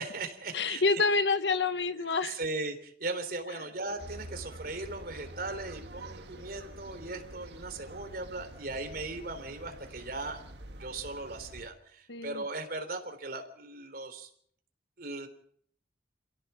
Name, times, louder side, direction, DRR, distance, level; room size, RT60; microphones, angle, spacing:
voice 1, 0.0-1.0 2.2-10.4 10.8-14.3 15.0-15.3, right 2 dB, 55° right, 6 dB, 3.6 m, -38 dB
voice 2, 0.5-2.4 12.1-12.4, left 4 dB, 75° left, 11 dB, 1.3 m, -27 dB
sound 1, 4.0-11.7, right 1 dB, 70° right, 1.8 m, -47 dB
28.0 x 17.0 x 5.9 m, 0.63 s
head